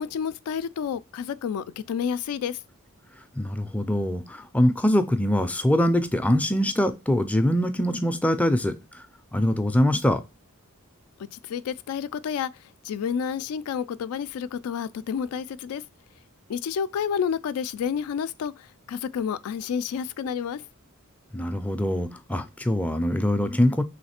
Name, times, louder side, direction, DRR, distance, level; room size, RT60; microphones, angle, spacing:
voice 1, 0.0-2.6 11.3-15.8 16.5-20.7, left 7 dB, 85° left, 0.3 m, -30 dB
voice 2, 3.3-9.0 9.3-10.2 21.3-23.8, left 1 dB, 5° left, 0.4 m, -23 dB
3.2 x 3.2 x 4.2 m
head